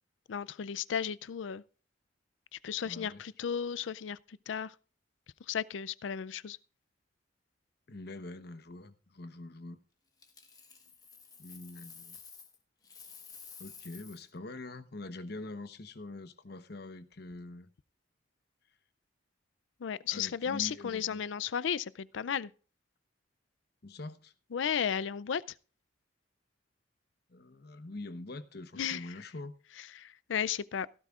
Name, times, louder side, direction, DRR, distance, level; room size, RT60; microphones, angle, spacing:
voice 1, 0.3-1.6 2.5-4.8 5.5-6.6 19.8-22.5 24.5-25.6 28.8-29.2 29.8-30.9, left 8 dB, 75° left, 0.4 m, -34 dB
voice 2, 2.8-3.2 7.9-9.8 11.4-12.2 13.6-17.7 20.1-21.3 23.8-24.3 27.3-29.5, left 2 dB, 55° left, 1.0 m, -44 dB
Coin (dropping), 10.2-12.6 12.8-14.3 17.1-17.3, left 6 dB, 20° left, 1.4 m, -52 dB
17.0 x 12.0 x 2.4 m
head